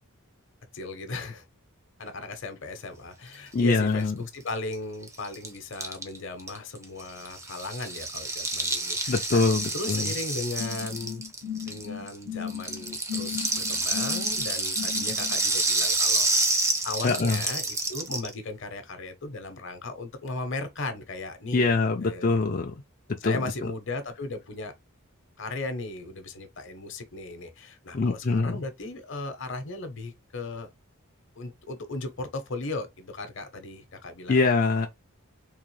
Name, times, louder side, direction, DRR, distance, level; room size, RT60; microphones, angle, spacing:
voice 1, 0.7-1.4 2.0-9.4 9.7-11.2 11.6-16.3 16.8-21.7 22.0-22.4 23.2-24.7 25.4-30.7 31.4-34.4, left 2 dB, 55° left, 0.9 m, -36 dB
voice 2, 3.5-4.1 9.1-10.1 17.0-17.4 21.5-22.7 23.2-23.4 27.9-28.6 34.3-34.9, left 3 dB, 40° left, 0.5 m, -23 dB
Rattle (instrument), 4.5-4.6 4.7-4.8 5.0-12.2 12.5-18.3, right 3 dB, 15° right, 0.5 m, -28 dB
sound 1, 10.6-15.4, left 8 dB, 70° right, 1.5 m, -36 dB
3.7 x 2.9 x 3.2 m
head